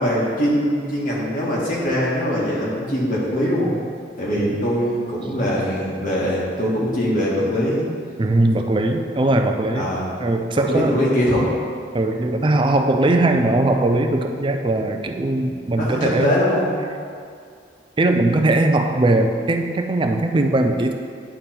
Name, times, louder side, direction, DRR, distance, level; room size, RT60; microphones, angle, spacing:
voice 1, 0.0-3.8 4.2-7.8 9.7-10.2 10.7-11.5 15.7-16.9, equal, 45° left, -6 dB, 1.6 m, -22 dB
voice 2, 8.2-9.9 10.2-11.0 11.9-16.4 18.0-20.9, right 2 dB, 25° right, 5 dB, 0.4 m, -20 dB
9.9 x 3.5 x 4.4 m, 2.2 s
head